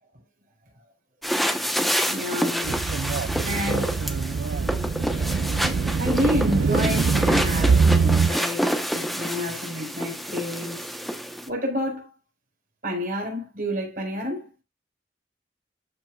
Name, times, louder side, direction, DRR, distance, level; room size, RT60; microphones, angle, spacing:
sound 1, 1.2-11.5, equal, ahead, 0.9 m, -28 dB
voice 1, 2.1-2.7 3.4-4.0 6.0-10.9 11.5-12.1 12.8-14.5, left 1 dB, 50° right, 4.6 m, -29 dB
sound 2, 2.6-8.3, right 5 dB, 80° right, 0.4 m, -23 dB
13.5 x 5.6 x 2.3 m
head